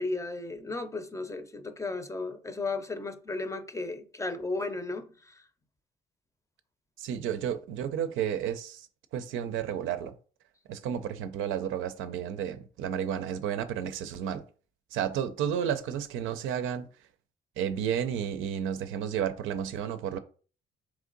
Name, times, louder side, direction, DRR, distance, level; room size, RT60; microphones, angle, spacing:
voice 1, 0.0-5.4, left 3 dB, 15° left, 0.5 m, -35 dB
voice 2, 7.0-8.9 9.1-10.1 10.7-14.4 14.9-16.9 17.6-20.2, right 9 dB, 90° right, 0.5 m, -32 dB
3.6 x 3.1 x 3.9 m
cardioid pair, 90°, 20 cm